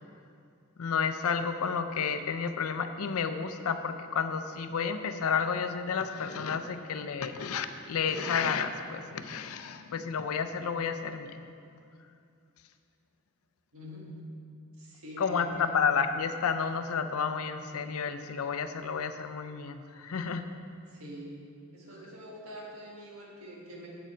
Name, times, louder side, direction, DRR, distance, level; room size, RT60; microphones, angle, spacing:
voice 1, 0.8-11.3 15.2-20.4, left 6 dB, 75° left, 9 dB, 0.5 m, -31 dB
voice 2, 13.7-14.1 14.8-15.7 20.9-21.3 21.7-23.9, equal, 70° right, -3 dB, 1.7 m, -45 dB
8.0 x 7.5 x 4.4 m, 2.5 s
head